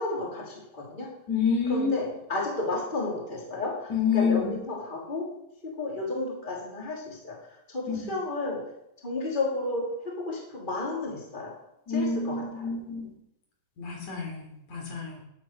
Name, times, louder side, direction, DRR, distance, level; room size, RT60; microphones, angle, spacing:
voice 1, 0.0-1.1 1.7-5.3 5.6-8.6 9.0-11.5 11.9-12.6, left 2 dB, 15° left, -2 dB, 3.2 m, -32 dB
voice 2, 1.3-1.9 3.9-4.5 7.9-8.1 11.9-13.1 13.8-15.2, left 5 dB, 70° left, 0 dB, 4.8 m, -28 dB
12.5 x 8.4 x 7.0 m, 0.81 s
omnidirectional pair, 3.5 m